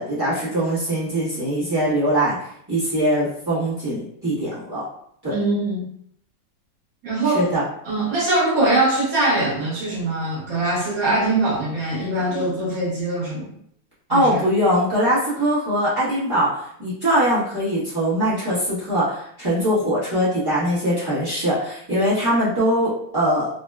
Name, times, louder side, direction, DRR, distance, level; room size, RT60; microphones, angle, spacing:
voice 1, 0.0-2.4 2.7-4.8 5.2-5.3 7.3-7.6 14.1-23.5, equal, 20° right, -11 dB, 0.6 m, -22 dB
voice 2, 5.3-5.9 7.0-7.5 7.8-13.5 14.1-14.4, right 2 dB, 50° right, -6 dB, 1.3 m, -22 dB
3.8 x 2.1 x 2.3 m, 0.68 s
omnidirectional pair, 2.2 m